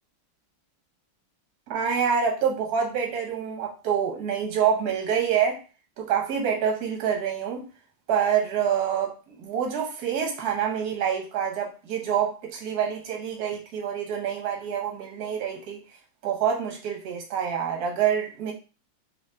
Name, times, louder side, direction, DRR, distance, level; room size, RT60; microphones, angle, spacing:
voice 1, 1.7-5.6 6.0-7.7 8.1-15.8 16.2-18.5, right 8 dB, 55° right, 1.3 m, -26 dB
3.2 x 2.8 x 3.4 m
omnidirectional pair, 2.3 m